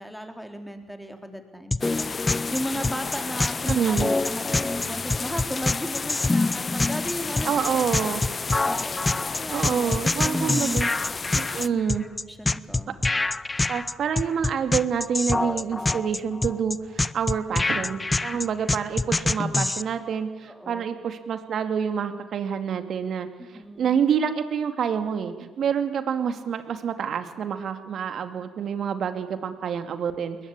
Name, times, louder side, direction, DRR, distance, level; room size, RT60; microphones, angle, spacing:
voice 1, 0.0-8.1 8.6-9.1 9.3-10.8 11.7-11.8 12.3-13.0 20.5-20.9 23.5-24.0, equal, ahead, 6 dB, 4.1 m, -35 dB
sound 1, 1.7-19.8, left 2 dB, 25° left, 0.8 m, -25 dB
sound 2, 1.8-11.7, left 4 dB, 40° left, 1.1 m, -32 dB
voice 2, 3.7-4.1 7.4-8.2 9.5-10.9 11.3-12.1 13.7-23.3 23.8-30.4, right 7 dB, 65° right, 9 dB, 2.3 m, -27 dB
21.5 x 20.0 x 8.9 m, 1.3 s
hypercardioid pair, 55°, 0 cm